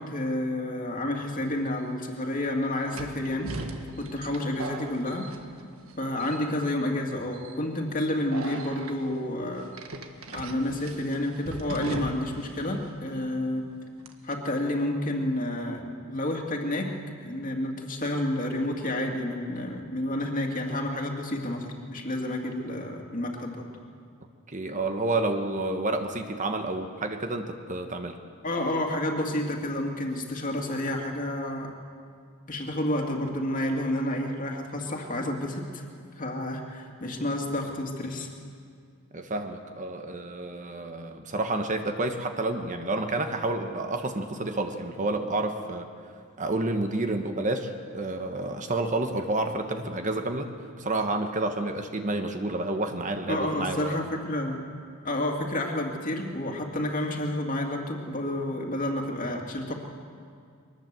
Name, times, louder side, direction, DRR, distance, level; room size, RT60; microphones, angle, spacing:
voice 1, 0.0-3.7 4.0-5.3 6.0-9.7 10.3-13.7 14.2-17.0 17.2-23.7 28.4-31.7 32.5-35.9 36.2-38.3 53.3-54.6 55.0-59.7, left 1 dB, 40° left, 1 dB, 2.5 m, -30 dB
sound 1, 1.6-1.7 2.9-5.9 6.2-6.7 7.3-7.6 8.3-8.9 9.7-12.5 12.7-12.8 14.0-14.3, right 2 dB, 70° right, 1.6 m, -38 dB
voice 2, 24.5-28.2 39.1-45.9 46.4-54.0, right 2 dB, 35° right, 6 dB, 1.2 m, -29 dB
23.0 x 19.5 x 7.6 m, 2.3 s
head